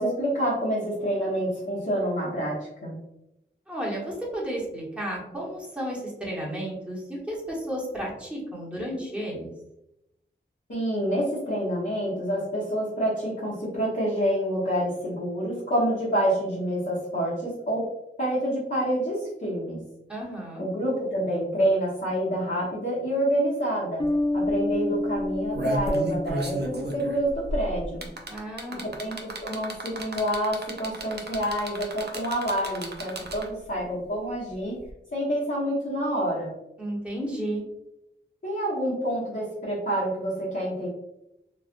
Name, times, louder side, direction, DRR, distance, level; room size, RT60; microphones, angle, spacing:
voice 1, 0.0-2.9 10.7-17.9 18.2-19.8 20.6-24.0 24.3-28.1 28.8-34.7 35.1-36.5 38.4-40.9, right 1 dB, 60° left, -11 dB, 1.1 m, -27 dB
voice 2, 3.7-9.5 20.1-20.6 28.3-29.0 36.8-37.6, right 1 dB, 5° right, -4 dB, 1.1 m, -33 dB
Bass guitar, 24.0-27.5, left 2 dB, 20° left, 0.4 m, -29 dB
sound 1, 24.0-24.1 24.4-24.7 25.2-33.7 34.9-35.0, right 1 dB, 55° right, 0.5 m, -34 dB
3.2 x 2.4 x 2.5 m, 0.86 s
wide cardioid pair, 55°, 21 cm